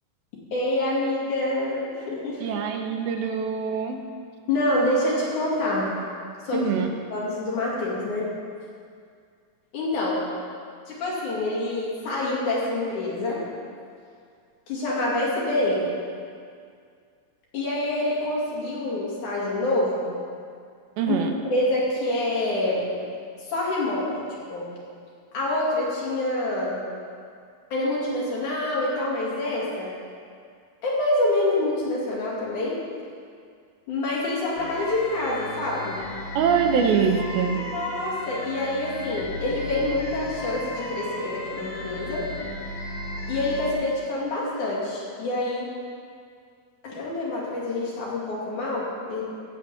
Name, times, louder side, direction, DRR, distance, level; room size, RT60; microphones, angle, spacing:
voice 1, 0.5-2.5 4.5-5.9 6.4-6.7 7.1-8.3 9.7-10.2 10.9-13.4 14.7-16.0 17.5-20.1 21.1-21.2 21.5-22.9 23.5-24.2 24.5-24.7 25.3-26.8 27.7-29.9 30.8-32.8 33.9-36.0 37.5-42.3 43.3-45.7 46.8-49.2, left 1 dB, 55° left, -6 dB, 3.6 m, -26 dB
voice 2, 2.4-4.0 6.5-6.9 21.0-21.3 36.4-37.6, right 6 dB, 80° right, 4 dB, 2.6 m, -24 dB
sound 1, 34.6-43.7, left 1 dB, 70° left, 3.0 m, -35 dB
14.5 x 5.1 x 8.3 m, 2.2 s
omnidirectional pair, 4.4 m